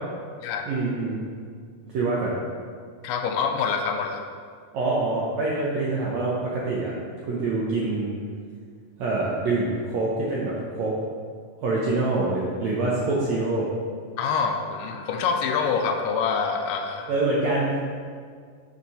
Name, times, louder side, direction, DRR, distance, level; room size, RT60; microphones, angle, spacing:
voice 1, 0.7-1.2 1.9-2.3 4.7-7.0 7.3-8.2 9.0-10.9 11.6-13.7 17.1-17.8, right 2 dB, 75° right, -5 dB, 1.6 m, -25 dB
voice 2, 3.0-4.3 14.2-17.1, left 5 dB, 80° left, 4 dB, 2.1 m, -26 dB
7.3 x 4.7 x 5.4 m, 2.1 s
omnidirectional pair, 4.2 m